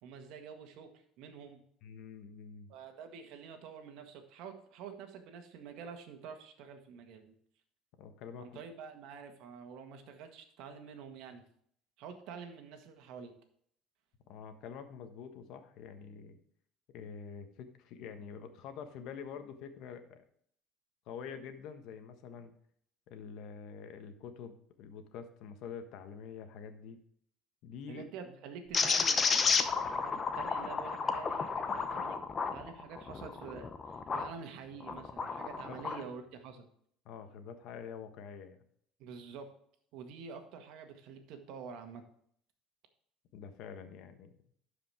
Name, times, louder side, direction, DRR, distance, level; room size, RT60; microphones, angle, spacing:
voice 1, 0.0-1.6 2.7-7.3 8.4-11.5 12.0-13.4 27.9-32.2 32.5-36.7 39.0-39.5 39.9-42.0, right 6 dB, 70° right, 6 dB, 1.6 m, -48 dB
voice 2, 1.8-2.7 8.0-8.5 14.3-16.4 16.9-20.2 21.1-22.5 23.1-27.0 27.6-28.0 35.7-36.0 37.0-38.6 43.3-44.3, left 7 dB, 65° left, 8 dB, 1.3 m, -46 dB
sound 1, 28.7-34.3 34.8-36.0, left 5 dB, 25° left, 0.8 m, -32 dB
11.5 x 5.1 x 4.9 m, 0.64 s
cardioid pair, 135°, 0 cm